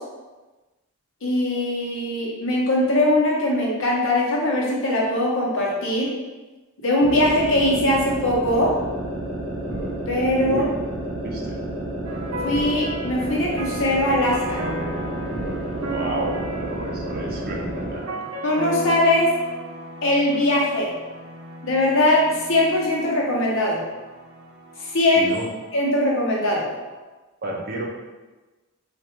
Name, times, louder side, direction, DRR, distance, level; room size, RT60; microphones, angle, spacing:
voice 1, 1.2-6.1 6.8-8.7 10.1-10.6 12.4-14.6 18.4-19.3 20.0-20.9 21.6-23.8 24.9-25.3 25.7-26.7, left 1 dB, 60° left, -3 dB, 0.9 m, -21 dB
sound 1, 7.0-18.1, right 1 dB, 20° right, 1.4 m, -30 dB
voice 2, 11.2-11.6 15.7-18.2 25.1-25.5 27.4-27.9, right 2 dB, 45° right, -2 dB, 0.6 m, -31 dB
sound 2, 12.0-27.0, right 1 dB, 85° right, 0.6 m, -36 dB
3.3 x 2.5 x 4.4 m, 1.2 s
head